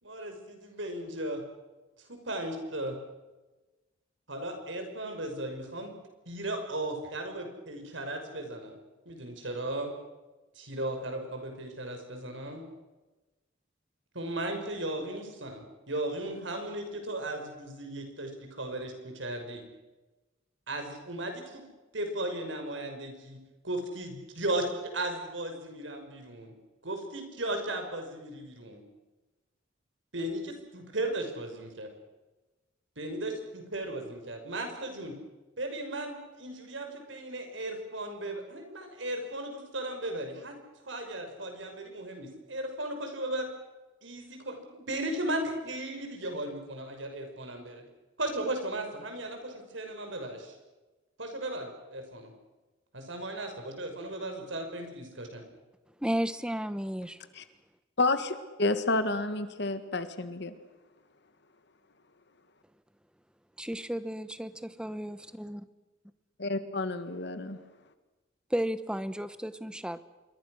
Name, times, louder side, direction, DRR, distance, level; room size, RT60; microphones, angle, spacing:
voice 1, 0.0-1.4 2.1-3.0 4.3-5.9 6.3-8.8 9.1-9.9 10.6-12.6 14.1-18.3 18.6-19.6 20.7-21.6 21.9-23.4 23.6-26.5 26.8-28.8 30.1-31.9 33.0-35.1 35.6-40.5 40.9-43.5 44.0-47.8 48.2-50.5 51.2-52.3 52.9-55.4, right 1 dB, 70° right, 5 dB, 5.8 m, -36 dB
voice 2, 56.0-57.2 63.6-65.6 68.5-70.0, equal, 5° right, 13 dB, 1.1 m, -33 dB
voice 3, 58.0-60.5 66.4-67.6, left 2 dB, 60° left, 10 dB, 1.7 m, -30 dB
27.0 x 23.5 x 6.5 m, 1.1 s
head